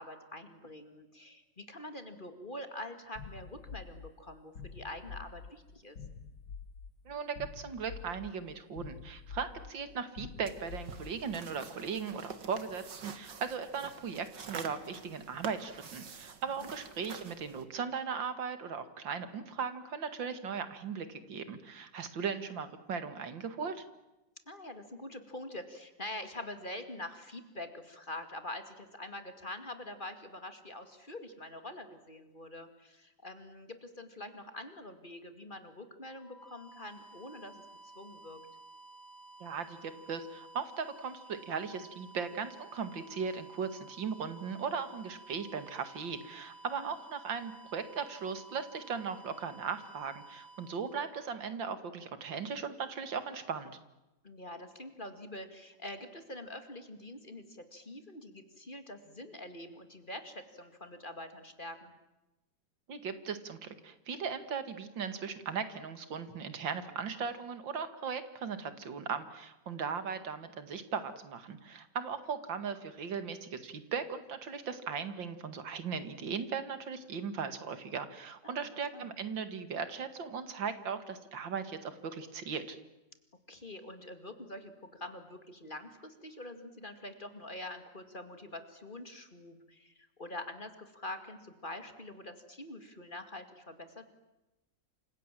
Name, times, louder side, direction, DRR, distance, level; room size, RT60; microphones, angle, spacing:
voice 1, 0.0-6.0 16.6-16.7 24.5-38.4 46.7-46.9 54.2-61.9 78.4-78.7 78.9-79.1 83.5-94.0, left 1 dB, 25° left, 9 dB, 2.5 m, -45 dB
sound 1, 3.2-11.4, left 5 dB, 70° left, 2.0 m, -48 dB
voice 2, 7.1-23.8 39.4-53.8 62.9-82.8, right 6 dB, 85° right, 11 dB, 2.6 m, -38 dB
sound 2, 10.4-17.6, right 5 dB, 70° right, 2.5 m, -47 dB
sound 3, 36.1-51.9, right 3 dB, 10° left, 2.3 m, -54 dB
29.0 x 26.5 x 7.6 m, 1.0 s
omnidirectional pair, 2.0 m